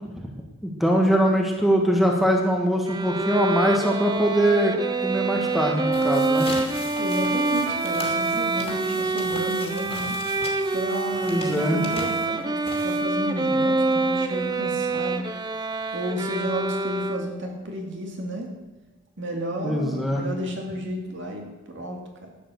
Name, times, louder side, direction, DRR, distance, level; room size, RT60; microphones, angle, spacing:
voice 1, 0.6-4.8 5.0-6.5 11.2-11.8 19.6-20.2, equal, ahead, 0 dB, 1.4 m, -22 dB
Bowed string instrument, 2.9-17.5, right 3 dB, 20° right, 0.6 m, -26 dB
sound 1, 5.7-13.3, left 2 dB, 25° left, 2.5 m, -39 dB
voice 2, 7.0-10.2 10.7-15.2 15.9-18.5 19.2-22.3, equal, 55° right, 2 dB, 2.3 m, -32 dB
12.0 x 8.8 x 7.0 m, 1.1 s
head